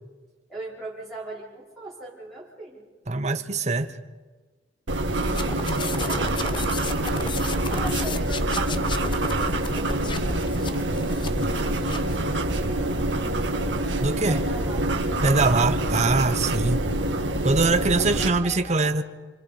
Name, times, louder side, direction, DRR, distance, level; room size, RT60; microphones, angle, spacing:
voice 1, 0.5-2.9 5.7-7.1 7.7-9.7 14.3-14.9 17.8-19.0, right 2 dB, ahead, -5 dB, 5.0 m, -40 dB
voice 2, 3.1-3.9 14.0-14.4 15.2-16.8 17.4-19.0, right 3 dB, 40° right, 7 dB, 1.1 m, -23 dB
sound 1, 4.9-18.3, right 1 dB, 80° right, 1.7 m, -26 dB
sound 2, 5.2-12.2, left 4 dB, 25° left, 0.9 m, -35 dB
28.0 x 24.5 x 5.1 m, 1.3 s
head